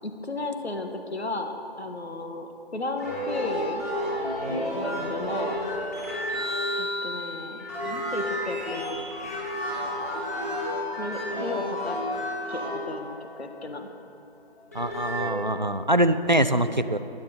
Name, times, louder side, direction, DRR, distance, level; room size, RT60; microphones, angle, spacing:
voice 1, 0.0-3.8 4.5-5.6 6.7-9.1 10.9-12.0 12.5-13.9, left 2 dB, 90° left, 5 dB, 1.5 m, -34 dB
sound 1, 3.0-13.4 14.5-15.3, equal, 15° left, 2.3 m, -31 dB
voice 2, 14.7-17.0, right 1 dB, 50° right, 11 dB, 0.4 m, -23 dB
15.5 x 10.5 x 3.9 m, 2.7 s
figure-of-eight pair, 180°, 31 cm